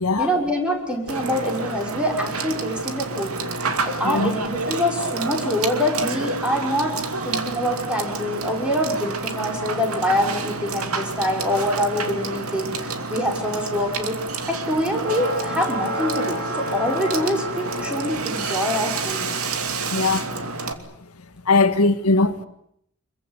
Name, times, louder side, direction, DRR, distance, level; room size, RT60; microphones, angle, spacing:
voice 1, 0.2-3.3 3.8-7.0 7.2-14.2 14.5-19.2, equal, 5° right, 6.1 m, -25 dB
Water / Water tap faucet / Sink (filling or washing), 1.1-20.7, right 3 dB, 75° right, 2.6 m, -29 dB
sound 1, 15.0-19.1, equal, 55° right, 7.7 m, -30 dB
voice 2, 19.9-20.2 21.5-22.5, left 3 dB, 85° left, 1.7 m, -19 dB
26.5 x 22.5 x 8.3 m
head